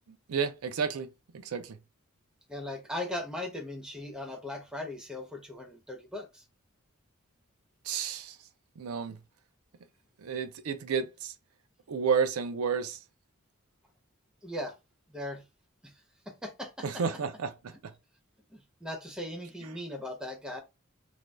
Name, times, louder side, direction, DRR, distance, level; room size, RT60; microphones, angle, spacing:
voice 1, 0.3-1.1 1.3-1.8 7.8-8.4 8.8-9.2 10.2-11.3 11.9-13.0 16.8-17.9, right 6 dB, 85° right, 0.4 m, -31 dB
voice 2, 2.5-6.4 14.4-14.7 15.1-15.4 15.8-17.0 18.5-20.6, left 1 dB, 5° right, 0.5 m, -39 dB
2.6 x 2.2 x 3.2 m
head